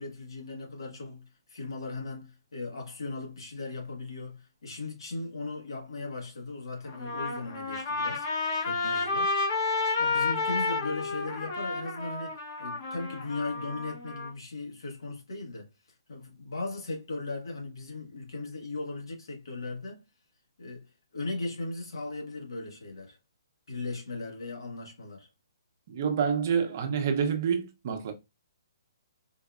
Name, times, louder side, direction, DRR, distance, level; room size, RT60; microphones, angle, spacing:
voice 1, 0.0-8.3 8.6-9.3 10.0-15.7 16.1-20.0 20.6-23.2 23.7-25.3, left 3 dB, 85° left, 1.5 m, -38 dB
Trumpet, 6.8-14.3, left 3 dB, 30° left, 0.8 m, -31 dB
voice 2, 25.9-28.1, right 7 dB, 35° right, 0.6 m, -27 dB
3.9 x 2.5 x 2.3 m
hypercardioid pair, 165°, 2 cm